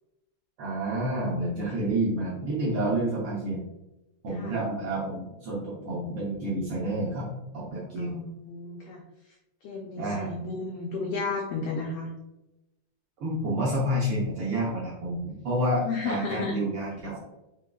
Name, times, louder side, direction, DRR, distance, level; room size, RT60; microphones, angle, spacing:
voice 1, 0.6-3.6 4.2-8.2 10.0-10.3 13.2-17.2, right 1 dB, 70° right, -5 dB, 1.4 m, -29 dB
voice 2, 8.0-9.0 9.6-12.1 15.8-16.5, left 4 dB, 85° left, -1 dB, 1.3 m, -33 dB
4.8 x 3.6 x 2.2 m, 0.98 s
omnidirectional pair, 3.3 m